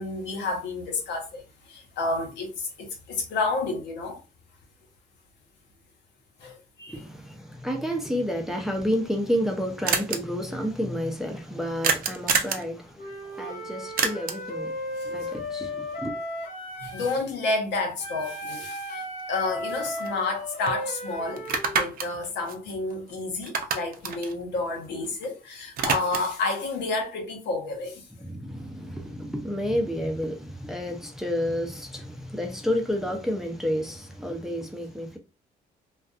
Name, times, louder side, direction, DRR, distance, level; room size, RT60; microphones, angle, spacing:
voice 1, 0.0-1.4 1.7-4.2 6.4-7.0 15.0-15.1 16.8-28.0, left 3 dB, 80° left, 0.9 m, -30 dB
voice 2, 6.9-14.7 15.0-16.1 28.2-35.2, equal, ahead, 0.5 m, -30 dB
sound 1, 9.9-10.2 11.8-12.7 14.0-14.5 18.7-18.8 19.2-20.3 20.7-20.8 21.4-23.1 23.4-25.3 25.5-26.4, right 5 dB, 55° right, 0.5 m, -28 dB
Wind instrument woodwind instrument, 13.0-17.2 18.0-21.9, left 1 dB, 55° left, 1.0 m, -35 dB
2.5 x 2.3 x 2.4 m
cardioid pair, 105°, 18 cm